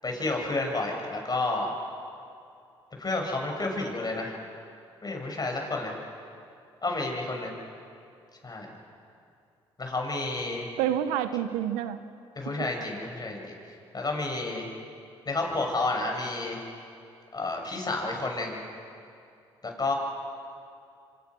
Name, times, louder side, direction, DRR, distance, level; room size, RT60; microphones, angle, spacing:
voice 1, 0.0-1.7 3.0-4.4 5.0-5.9 6.8-7.5 8.4-8.7 9.8-10.7 12.4-13.5 13.9-14.7 15.3-16.6 17.3-18.6 19.6-19.9, left 2 dB, 35° left, 1 dB, 7.1 m, -30 dB
voice 2, 10.8-12.0 12.4-12.7, right 10 dB, 85° right, 12 dB, 1.0 m, -28 dB
28.0 x 25.0 x 6.3 m, 2.5 s
hypercardioid pair, 50°, 12 cm